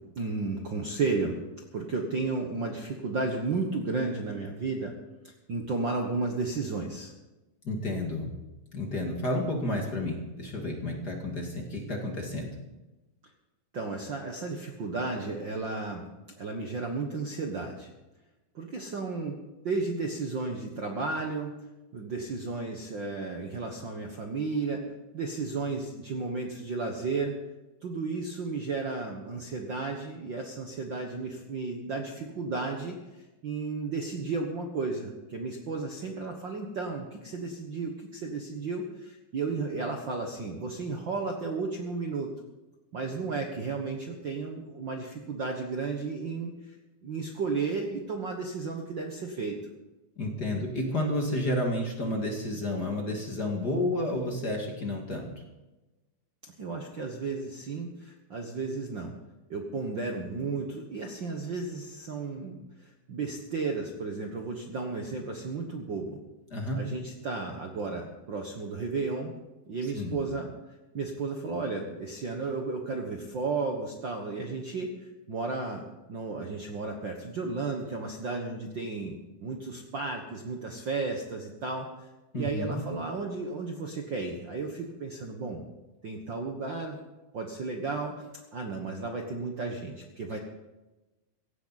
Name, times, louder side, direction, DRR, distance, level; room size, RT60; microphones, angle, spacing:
voice 1, 0.1-1.4 1.7-4.9 5.2-7.1 13.7-16.1 16.4-17.9 18.5-19.4 19.6-21.6 21.9-24.9 25.1-27.3 27.8-33.0 33.4-42.3 42.9-46.7 47.0-49.6 56.6-59.1 59.5-66.2 66.8-69.3 69.7-70.5 70.9-75.8 76.1-81.9 82.3-85.6 86.0-87.0 87.3-88.2 88.5-90.4, right 3 dB, 85° right, 2 dB, 1.0 m, -33 dB
voice 2, 7.6-8.3 8.7-12.5 50.2-55.3 66.5-66.8 69.9-70.2 82.3-82.8 90.3-90.4, left 1 dB, 35° left, 1 dB, 2.0 m, -31 dB
17.0 x 16.5 x 4.1 m, 1.1 s
omnidirectional pair, 4.2 m